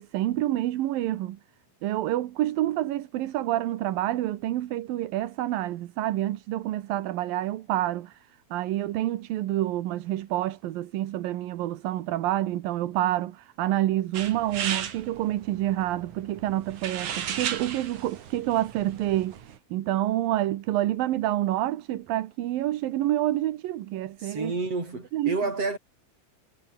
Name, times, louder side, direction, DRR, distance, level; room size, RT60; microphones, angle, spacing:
voice 1, 0.0-1.4 1.8-8.2 8.5-19.4 19.7-24.5 25.1-25.4, right 14 dB, 90° right, 2.9 m, -28 dB
sound 1, 14.1-19.6, right 8 dB, 60° right, 3.5 m, -36 dB
voice 2, 24.2-25.8, right 3 dB, 45° right, 7.3 m, -29 dB
omnidirectional pair, 3.9 m